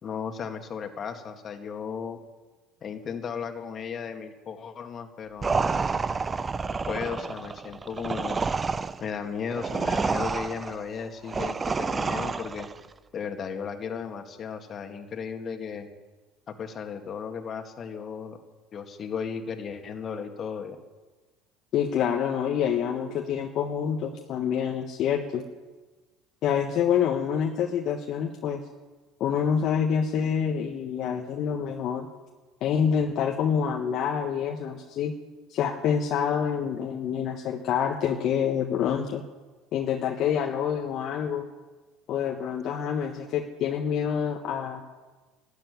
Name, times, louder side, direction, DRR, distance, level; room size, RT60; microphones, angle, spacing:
voice 1, 0.0-2.2 2.8-5.9 6.7-8.4 9.0-12.7 13.1-15.9 16.5-18.4 18.7-20.8, left 6 dB, 40° left, 5 dB, 2.1 m, -35 dB
sound 1, 5.4-12.8, right 4 dB, 25° right, 0.6 m, -29 dB
voice 2, 21.7-25.4 26.4-28.6 29.2-32.1 32.6-35.1 35.5-39.2 39.7-41.5 42.1-44.8, left 8 dB, 55° left, 2 dB, 1.4 m, -27 dB
12.5 x 11.5 x 9.5 m, 1.2 s
supercardioid pair, 90°, 0 cm